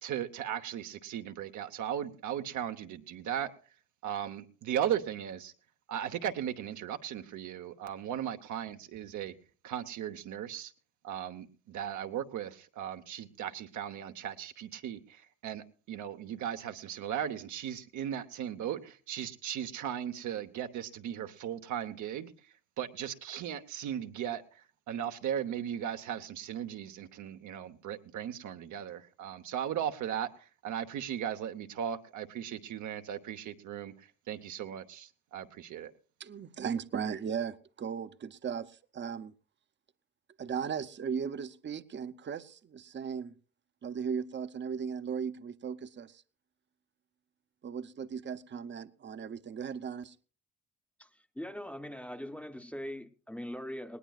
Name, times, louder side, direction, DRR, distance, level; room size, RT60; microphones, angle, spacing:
voice 1, 0.0-3.5 4.0-5.5 5.9-9.3 9.6-10.7 11.0-35.9, right 10 dB, 80° right, 1.0 m, -37 dB
voice 2, 36.2-39.3 40.4-43.3 43.8-46.2 47.6-50.2, right 7 dB, 40° right, 0.7 m, -37 dB
voice 3, 51.3-54.0, equal, 5° left, 0.8 m, -41 dB
19.5 x 18.0 x 2.4 m
cardioid pair, 90°, 30 cm